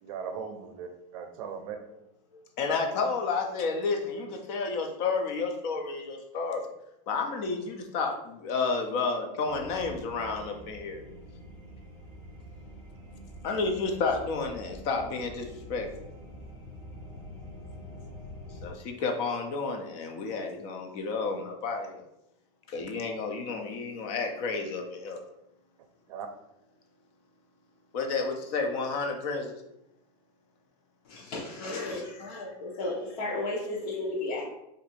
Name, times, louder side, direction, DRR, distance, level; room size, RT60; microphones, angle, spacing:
voice 1, 0.0-1.8 2.6-2.7 26.1-26.3, right 6 dB, 60° right, 6 dB, 0.6 m, -38 dB
voice 2, 2.6-6.7 7.1-11.0 13.4-15.9 18.6-22.0 22.7-25.2 27.9-29.6, left 4 dB, 30° left, 3 dB, 0.5 m, -31 dB
sound 1, 9.5-18.7, equal, 10° left, 1.1 m, -46 dB
voice 3, 31.0-34.4, left 2 dB, 70° left, -5 dB, 0.9 m, -34 dB
2.7 x 2.5 x 4.1 m, 0.84 s
supercardioid pair, 180°, 20 cm